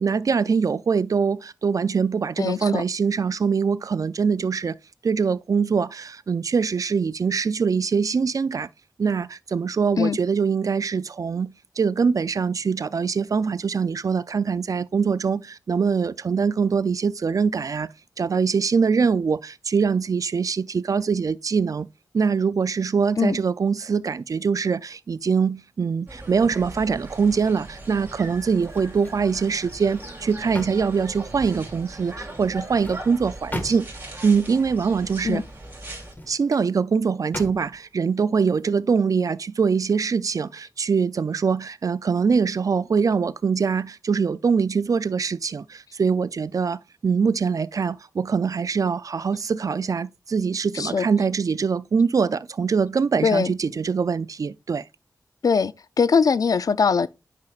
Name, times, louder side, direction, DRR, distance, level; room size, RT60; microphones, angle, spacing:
voice 1, 0.0-4.8 5.0-8.7 9.0-17.9 18.2-21.9 22.1-33.9 34.2-35.4 36.3-54.8, right 5 dB, 60° right, 0.4 m, -23 dB
voice 2, 2.4-2.8 10.0-10.2 23.2-23.4 35.2-35.4 50.7-51.1 53.2-53.5 55.4-55.7 56.0-57.1, left 5 dB, 65° left, 0.4 m, -21 dB
sound 1, 26.1-36.1, right 1 dB, 30° right, 2.9 m, -39 dB
sound 2, 28.6-29.3 29.7-31.7 32.4-34.1 35.9-36.7 37.3-37.9 38.4-38.6, left 1 dB, 30° left, 1.6 m, -39 dB
9.4 x 5.4 x 2.4 m
cardioid pair, 55°, 7 cm